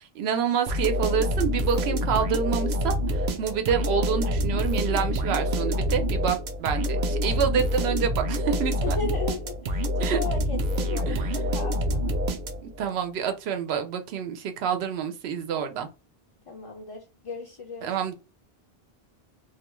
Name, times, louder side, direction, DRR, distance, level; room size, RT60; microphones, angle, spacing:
voice 1, 0.0-9.0 10.0-10.2 11.1-11.2 12.8-15.9 17.8-18.1, right 7 dB, 90° right, 0.8 m, -27 dB
sound 1, 0.7-12.8, equal, 55° right, 0.6 m, -27 dB
voice 2, 8.8-12.2 16.5-17.9, left 4 dB, 45° left, 0.4 m, -36 dB
2.5 x 2.2 x 2.9 m
omnidirectional pair, 1.0 m